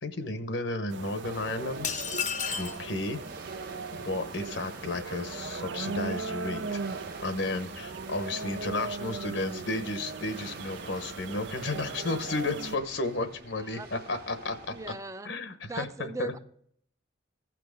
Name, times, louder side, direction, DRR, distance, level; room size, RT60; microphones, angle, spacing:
voice 1, 0.0-1.9 2.5-3.2 3.9-6.8 7.2-14.6 15.2-16.3, left 2 dB, 70° left, 8 dB, 1.0 m, -33 dB
sound 1, 0.9-12.8, right 4 dB, 65° right, 0.4 m, -38 dB
sound 2, 1.2-14.9, right 2 dB, 50° right, 1.4 m, -47 dB
sound 3, 1.8-2.8, left 7 dB, 40° left, 0.7 m, -32 dB
voice 2, 13.6-13.9 14.7-15.3 15.7-16.4, right 3 dB, 15° right, 11 dB, 0.5 m, -39 dB
15.5 x 6.0 x 3.5 m, 0.64 s
head